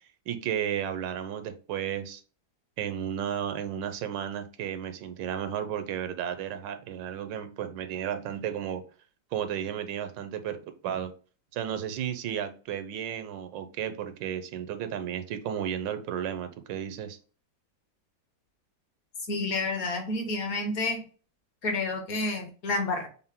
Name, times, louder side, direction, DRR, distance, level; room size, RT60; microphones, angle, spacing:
voice 1, 0.3-2.2 2.8-8.8 9.3-11.1 11.5-17.2, right 9 dB, 80° right, 10 dB, 1.3 m, -33 dB
voice 2, 19.3-21.0 21.6-23.1, left 2 dB, 55° left, 3 dB, 1.4 m, -29 dB
5.5 x 2.1 x 3.5 m, 0.38 s
omnidirectional pair, 2.0 m